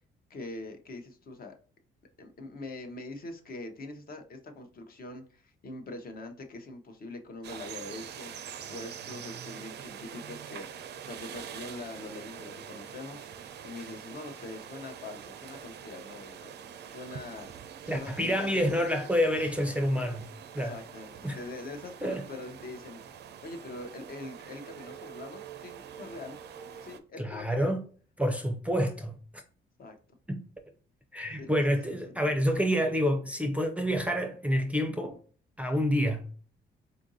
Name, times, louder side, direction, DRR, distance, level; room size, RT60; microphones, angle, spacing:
voice 1, 0.3-1.5 2.2-8.3 8.7-13.3 13.6-17.5 17.9-18.4 20.6-23.0 23.4-26.4 26.8-27.7 29.8-30.0 31.4-32.4, left 2 dB, 50° left, 0.7 m, -43 dB
sound 1, 7.4-27.0, right 8 dB, 60° right, 0.4 m, -45 dB
voice 2, 17.9-20.3 20.5-20.7 21.2-21.4 22.0-22.2 27.2-27.8 28.2-29.2 30.3-30.4 31.1-35.2 35.6-36.2, equal, 5° right, 0.5 m, -28 dB
3.8 x 2.5 x 2.6 m
cardioid pair, 90°, 20 cm